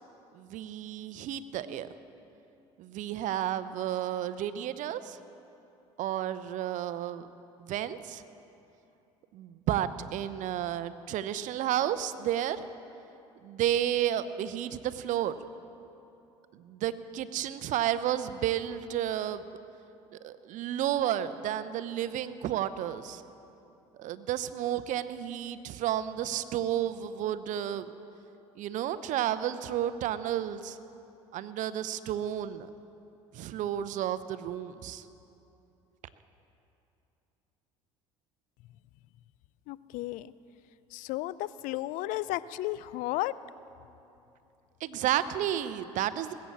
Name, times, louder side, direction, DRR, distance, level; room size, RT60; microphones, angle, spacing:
voice 1, 0.3-1.9 2.8-5.2 6.0-7.3 7.6-8.2 9.3-12.6 13.4-15.3 16.5-19.4 20.1-23.2 24.0-27.9 28.6-30.8 31.3-32.7 33.3-35.0 44.8-46.3, right 11 dB, 60° right, 14 dB, 0.7 m, -32 dB
voice 2, 39.7-40.3 40.9-43.3, left 16 dB, 65° left, 17 dB, 0.4 m, -33 dB
19.5 x 8.7 x 7.3 m, 2.8 s
hypercardioid pair, 70°, 15 cm